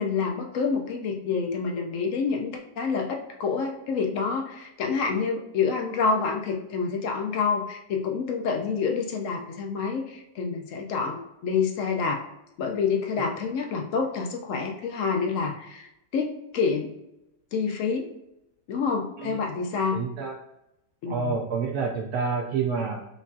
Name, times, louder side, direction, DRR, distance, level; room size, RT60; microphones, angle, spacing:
voice 1, 0.0-12.2 12.6-16.9 17.5-18.1 18.7-20.0 21.0-21.4, left 5 dB, 65° left, 2 dB, 0.8 m, -28 dB
voice 2, 19.9-20.3 21.1-23.1, right 5 dB, 70° right, 0 dB, 1.0 m, -28 dB
5.3 x 2.6 x 2.4 m, 0.87 s
omnidirectional pair, 1.8 m